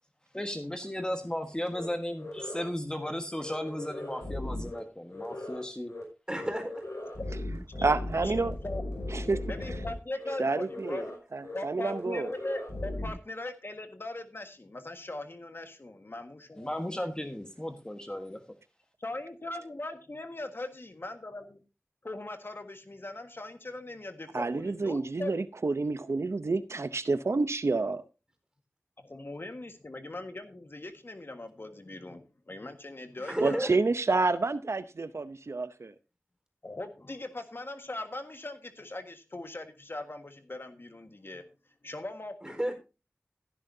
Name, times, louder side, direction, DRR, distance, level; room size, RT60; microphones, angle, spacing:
voice 1, 0.3-5.9 16.6-18.4, left 1 dB, 15° left, 1.4 m, -35 dB
sound 1, 1.7-1.9 2.2-2.7 2.9-3.1 3.4-4.8 5.1-5.6 5.9-6.0 6.3-9.9 10.2-10.3 10.7-11.2 11.4-11.6 11.9-13.1, left 1 dB, 80° left, 6.0 m, -37 dB
voice 2, 6.3-6.9 33.2-33.8 42.4-42.8, right 1 dB, 15° right, 4.3 m, -32 dB
voice 3, 7.8-8.5 9.1-9.4 10.4-11.1 11.3-12.3 24.3-28.0 33.4-35.9, right 3 dB, 70° right, 0.7 m, -29 dB
voice 4, 9.5-11.1 11.5-16.7 19.0-21.6 22.0-25.4 29.0-33.6 36.6-41.5 41.8-42.5, left 2 dB, 50° left, 1.6 m, -40 dB
15.5 x 10.5 x 2.7 m
wide cardioid pair, 55°, 5 cm